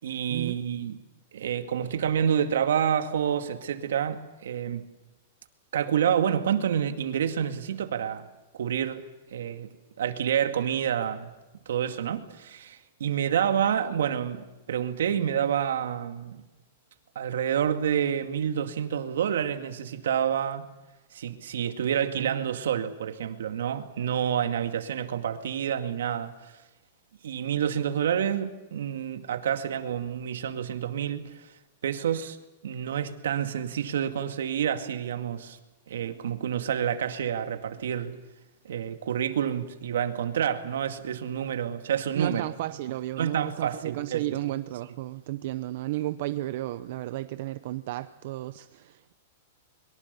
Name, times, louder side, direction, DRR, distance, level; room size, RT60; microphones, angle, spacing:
voice 1, 0.0-1.0 1.3-4.9 5.7-8.3 8.5-9.0 9.3-9.7 10.0-11.3 11.7-16.4 17.2-20.7 21.1-26.5 27.2-31.3 31.8-32.4 32.6-35.6 35.9-38.2 38.6-42.5 43.2-44.2, right 9 dB, 85° right, 2.2 m, -28 dB
voice 2, 42.1-49.1, right 15 dB, 50° right, 0.7 m, -33 dB
23.0 x 23.0 x 6.9 m
supercardioid pair, 165°, 0 cm